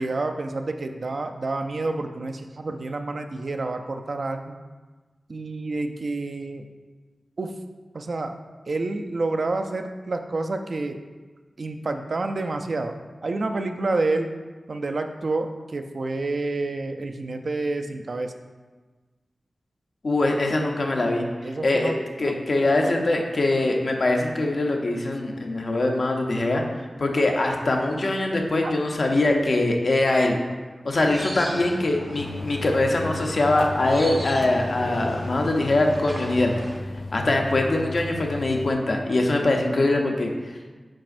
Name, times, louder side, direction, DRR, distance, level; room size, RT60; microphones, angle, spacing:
voice 1, 0.0-4.6 5.3-6.6 7.4-7.5 7.9-8.3 8.7-11.0 11.6-12.9 13.2-14.3 14.7-18.3 21.4-22.0 22.2-22.4 28.6-28.7, right 2 dB, 55° right, 6 dB, 0.4 m, -28 dB
voice 2, 20.0-21.3 21.6-21.9 22.2-26.6 27.0-30.4 30.8-36.5 37.1-40.3, left 2 dB, 55° left, 2 dB, 0.8 m, -22 dB
sound 1, 30.9-36.8, equal, 15° right, 0.6 m, -36 dB
sound 2, 32.2-38.7, left 2 dB, 80° left, 0.4 m, -35 dB
7.4 x 5.1 x 2.5 m, 1.3 s
wide cardioid pair, 110°, 0 cm